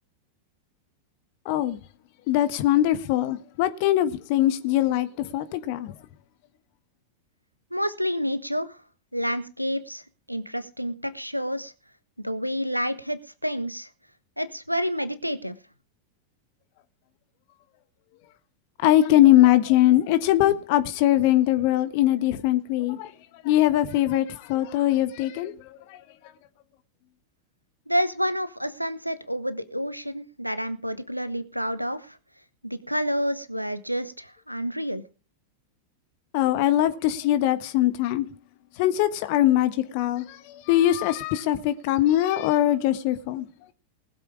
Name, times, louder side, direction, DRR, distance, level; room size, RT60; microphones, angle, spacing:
voice 1, 1.4-1.8 2.3-5.9 18.8-23.1 23.4-26.0 36.3-38.3 38.8-43.5, left 13 dB, 45° left, 1.5 m, -22 dB
voice 2, 7.7-8.8 9.1-10.0 10.3-11.7 12.2-13.9 14.4-15.6 27.9-32.2 32.6-35.0, equal, 90° right, 1.2 m, -29 dB
20.0 x 7.6 x 5.0 m
figure-of-eight pair, 90°, 0 cm